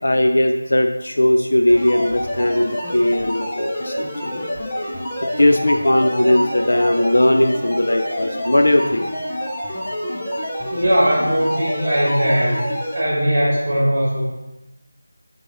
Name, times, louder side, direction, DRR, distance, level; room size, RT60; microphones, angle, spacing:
voice 1, 0.0-3.9 4.2-4.5 5.4-9.1, left 1 dB, 55° left, 5 dB, 0.5 m, -18 dB
sound 1, 1.7-13.0, equal, 10° left, 0.5 m, -27 dB
voice 2, 10.7-12.6 12.9-14.2, equal, 20° right, -6 dB, 2.1 m, -19 dB
11.5 x 3.8 x 3.1 m, 0.97 s
figure-of-eight pair, 180°, 0 cm